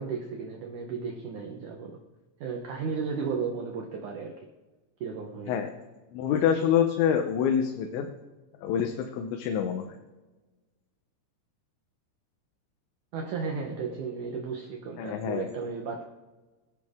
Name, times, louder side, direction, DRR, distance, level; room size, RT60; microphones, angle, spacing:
voice 1, 0.0-2.0 2.4-4.5 5.0-5.6 13.1-16.0, right 5 dB, 75° right, 2 dB, 1.8 m, -34 dB
voice 2, 6.1-8.1 8.6-9.9 15.0-15.5, left 8 dB, 90° left, 4 dB, 3.2 m, -26 dB
22.0 x 11.0 x 3.6 m, 1.2 s
omnidirectional pair, 5.1 m